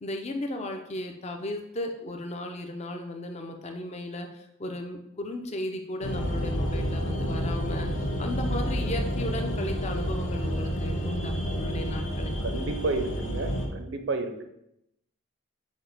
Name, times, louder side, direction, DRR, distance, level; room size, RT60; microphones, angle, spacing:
voice 1, 0.0-12.4, left 1 dB, 30° left, 4 dB, 0.4 m, -35 dB
sound 1, 6.0-13.7, equal, 65° left, 0.7 m, -29 dB
voice 2, 12.4-14.4, right 3 dB, 60° right, 7 dB, 0.5 m, -31 dB
6.1 x 2.1 x 3.9 m, 0.82 s
head